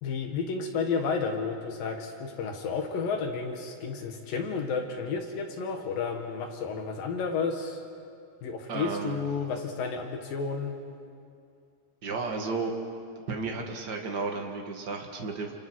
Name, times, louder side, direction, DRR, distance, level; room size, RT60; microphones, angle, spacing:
voice 1, 0.0-7.8 8.4-10.8, left 5 dB, 60° left, 4 dB, 2.9 m, -31 dB
voice 2, 8.7-9.2 12.0-12.7 13.3-15.5, right 4 dB, 70° right, 2 dB, 0.9 m, -33 dB
28.0 x 27.0 x 6.3 m, 2.4 s
omnidirectional pair, 5.1 m